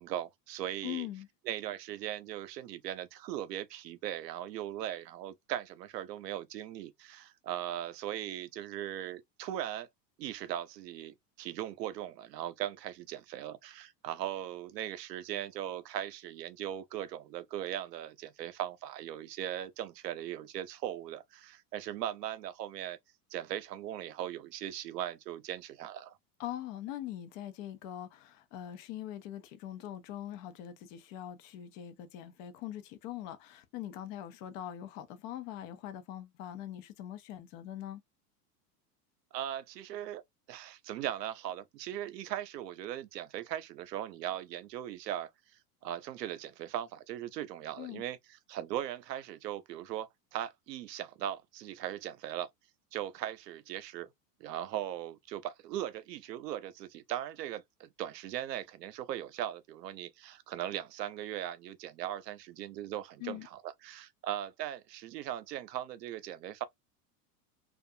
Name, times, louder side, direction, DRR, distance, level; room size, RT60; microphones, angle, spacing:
voice 1, 0.0-1.1 1.4-9.9 10.2-23.0 23.3-26.2 39.3-40.2 40.5-45.3 45.8-52.5 52.9-54.1 54.4-66.6, right 11 dB, 90° right, 0.6 m, -39 dB
voice 2, 0.8-1.3 26.4-38.0 47.8-48.0 63.2-63.5, left 12 dB, 55° left, 0.7 m, -42 dB
2.4 x 2.2 x 2.6 m
hypercardioid pair, 100°, 48 cm